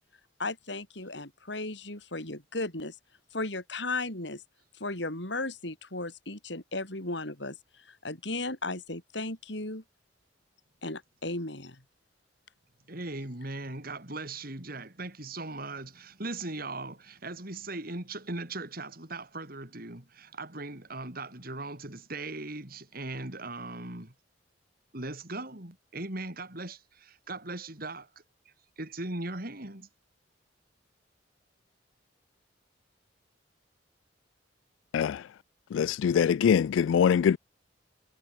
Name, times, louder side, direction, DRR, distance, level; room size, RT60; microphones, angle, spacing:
voice 1, 0.4-2.9 3.3-4.4 4.8-9.8 10.8-11.8, left 2 dB, 65° left, 5.1 m, -35 dB
voice 2, 12.9-24.1 24.9-28.1 28.8-29.9, right 2 dB, 50° right, 4.1 m, -39 dB
voice 3, 35.7-37.4, left 7 dB, 80° left, 0.3 m, -23 dB
head